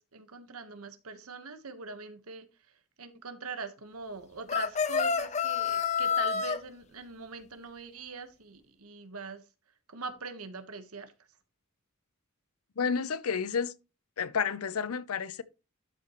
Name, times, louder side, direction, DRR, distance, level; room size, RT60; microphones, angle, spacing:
voice 1, 0.0-2.5 3.0-9.4 9.9-11.1, right 4 dB, 90° right, 1.2 m, -42 dB
sound 1, 4.5-6.6, left 6 dB, 30° left, 0.6 m, -28 dB
voice 2, 12.8-13.7 14.2-15.4, left 6 dB, 85° left, 0.6 m, -30 dB
12.0 x 5.6 x 3.0 m
head